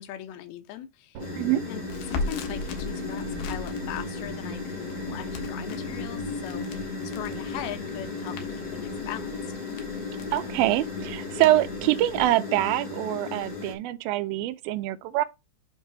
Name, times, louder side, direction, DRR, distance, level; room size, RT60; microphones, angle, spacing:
voice 1, 0.0-1.4 1.7-9.4, left 12 dB, 75° left, 2.7 m, -40 dB
sound 1, 1.2-13.7, left 3 dB, 50° left, 1.3 m, -35 dB
sound 2, 1.2-3.1, right 5 dB, 55° right, 2.4 m, -48 dB
Crackle, 1.8-12.3, left 3 dB, 90° left, 3.4 m, -40 dB
voice 2, 10.3-15.2, right 15 dB, 80° right, 2.3 m, -25 dB
8.2 x 3.0 x 6.0 m
omnidirectional pair, 4.8 m